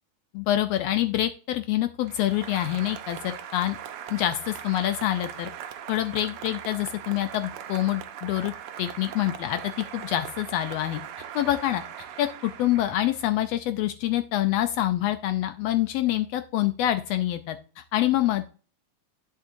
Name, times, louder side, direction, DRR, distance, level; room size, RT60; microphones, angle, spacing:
voice 1, 0.3-3.8 4.1-5.5 5.9-8.5 8.8-9.6 9.9-11.0 11.3-18.5, left 13 dB, 85° left, 9 dB, 1.4 m, -26 dB
Applause, 2.0-13.5, right 9 dB, 80° right, 1.2 m, -40 dB
10.5 x 6.5 x 2.5 m, 0.37 s
omnidirectional pair, 3.4 m